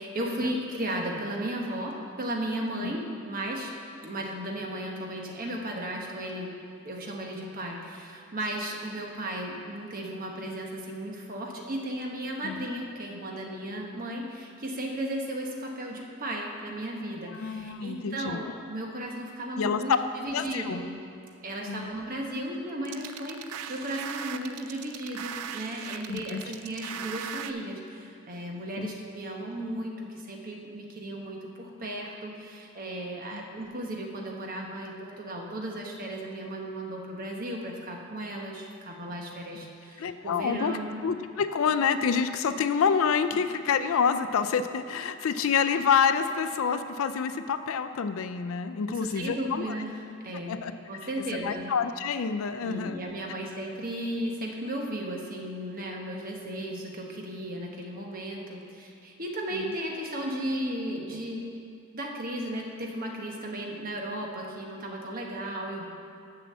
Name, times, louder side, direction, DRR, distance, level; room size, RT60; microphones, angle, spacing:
voice 1, 0.0-3.7 4.0-6.5 6.8-19.9 20.2-20.9 21.4-41.0 48.9-50.0 50.2-50.6 50.9-51.7 52.6-61.5 61.9-65.8, right 1 dB, 40° right, 0 dB, 1.0 m, -35 dB
voice 2, 17.3-18.5 19.6-20.0 20.3-20.8 21.7-21.9 26.1-26.4 28.8-28.9 33.3-33.4 40.0-40.7 41.0-49.8 50.5-50.7 51.4-53.0 59.5-59.7, left 6 dB, 65° left, 10 dB, 0.4 m, -27 dB
sound 1, 22.9-27.5, right 8 dB, 80° right, 0.4 m, -38 dB
6.7 x 6.1 x 7.3 m, 2.5 s
head